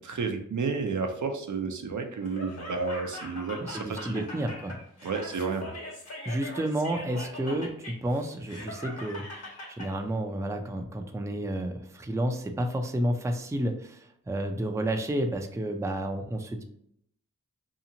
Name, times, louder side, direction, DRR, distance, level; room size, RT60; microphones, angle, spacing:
voice 1, 0.0-4.2 5.0-5.7, right 4 dB, 60° right, 5 dB, 0.5 m, -31 dB
Laughter, 2.2-9.9, left 1 dB, 50° left, 1.1 m, -41 dB
voice 2, 3.6-4.8 6.2-9.5 9.8-16.6, right 1 dB, 10° right, 4 dB, 0.4 m, -31 dB
2.8 x 2.4 x 2.7 m, 0.71 s
cardioid pair, 45°, 34 cm